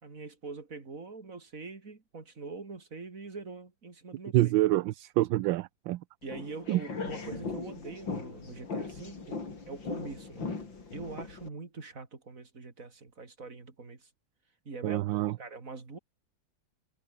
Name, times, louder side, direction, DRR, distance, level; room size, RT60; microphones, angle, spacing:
voice 1, 0.0-4.4 6.2-10.5 10.9-14.1 14.7-16.0, right 4 dB, 40° right, 3.5 m, -43 dB
voice 2, 4.3-6.0 6.7-6.8 14.8-15.3, right 16 dB, 75° right, 1.3 m, -26 dB
sound 1, 6.2-11.5, left 4 dB, 70° left, 4.6 m, -39 dB
omnidirectional pair, 2.1 m